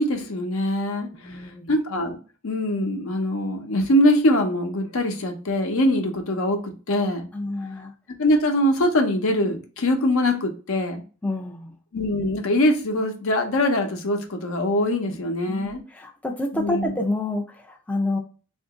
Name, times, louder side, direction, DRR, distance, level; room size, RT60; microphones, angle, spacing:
voice 1, 0.0-2.2 2.4-6.6 6.9-7.3 8.2-11.0 11.9-15.8 16.5-17.0, left 1 dB, 75° left, 4 dB, 0.7 m, -23 dB
voice 2, 1.1-1.7 7.3-7.9 11.2-11.7 15.5-18.2, left 2 dB, 5° left, 1 dB, 0.3 m, -28 dB
2.8 x 2.5 x 3.5 m, 0.37 s
head